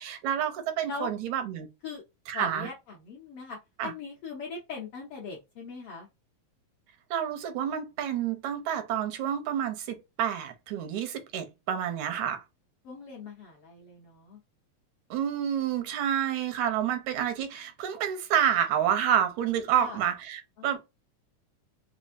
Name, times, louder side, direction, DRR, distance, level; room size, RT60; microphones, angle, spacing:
voice 1, 0.0-1.7 2.3-2.7 3.8-3.9 7.1-12.4 15.1-20.8, right 9 dB, 80° right, 1.9 m, -29 dB
voice 2, 2.3-6.1 12.8-14.4 19.7-20.0 20.6-20.8, left 4 dB, 70° left, 1.4 m, -40 dB
5.0 x 2.1 x 2.5 m
omnidirectional pair, 3.4 m